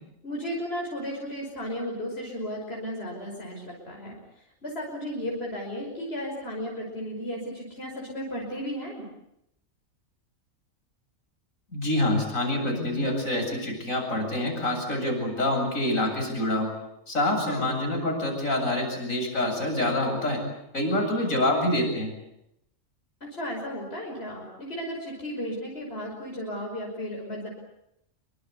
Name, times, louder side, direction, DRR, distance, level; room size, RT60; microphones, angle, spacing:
voice 1, 0.2-9.1 17.4-17.7 23.2-27.5, equal, 50° left, -1 dB, 5.8 m, -34 dB
voice 2, 11.7-16.7 17.1-20.4 20.7-22.1, left 1 dB, 90° left, 3 dB, 8.2 m, -26 dB
27.0 x 24.0 x 8.2 m, 0.80 s
omnidirectional pair, 1.4 m